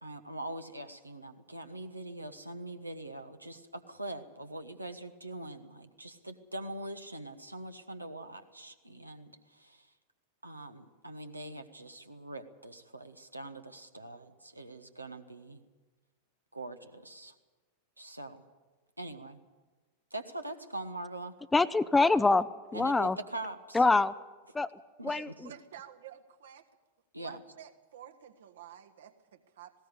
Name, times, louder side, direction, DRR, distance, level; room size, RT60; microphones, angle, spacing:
voice 1, 0.0-9.9 10.4-15.6 16.5-17.3 18.0-18.4 19.0-19.4 20.1-21.4 22.7-23.8 25.0-25.1 27.1-27.4, right 1 dB, 85° right, 7 dB, 1.2 m, -43 dB
voice 2, 21.5-23.2 23.7-24.1 24.5-24.7 25.0-25.3, left 3 dB, 10° left, 15 dB, 0.6 m, -25 dB
voice 3, 25.1-26.7 27.2-29.7, right 10 dB, 60° right, 7 dB, 1.5 m, -50 dB
19.5 x 17.0 x 8.2 m, 1.3 s
figure-of-eight pair, 90°, 0 cm